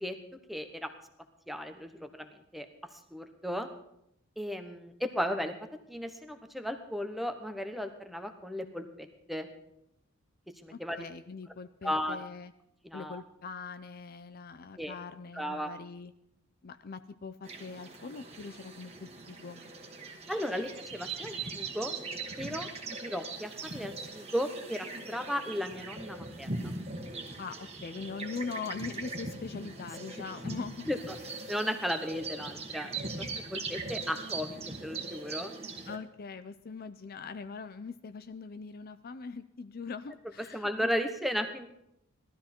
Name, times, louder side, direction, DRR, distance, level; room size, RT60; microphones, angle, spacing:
voice 1, 0.5-0.9 1.5-2.3 2.5-2.7 3.1-3.7 4.4-5.5 5.9-9.5 10.6-11.0 11.8-12.2 12.8-13.2 14.8-14.9 15.3-15.7 20.3-21.9 22.4-26.5 30.9-31.0 31.5-35.5 40.5-41.7, equal, ahead, 7 dB, 1.0 m, -35 dB
voice 2, 10.7-12.5 12.9-16.1 16.6-19.6 27.4-30.9 35.9-40.9, left 4 dB, 45° left, 11 dB, 0.5 m, -42 dB
sound 1, 17.4-36.0, right 3 dB, 30° right, 1.7 m, -41 dB
17.5 x 13.0 x 4.4 m, 0.78 s
head